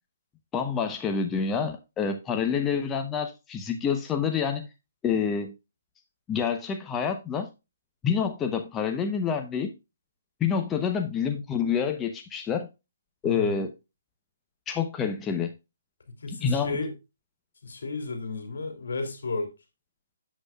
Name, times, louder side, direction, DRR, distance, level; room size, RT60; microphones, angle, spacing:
voice 1, 0.5-4.7 5.0-5.5 6.3-7.5 8.0-9.7 10.4-12.7 13.2-13.7 14.7-15.5 16.4-16.8, left 6 dB, 15° left, 0.8 m, -27 dB
voice 2, 13.2-13.6 16.2-16.9 17.6-19.5, left 3 dB, 80° left, 2.7 m, -33 dB
8.2 x 7.8 x 2.3 m
hypercardioid pair, 155°, 0 cm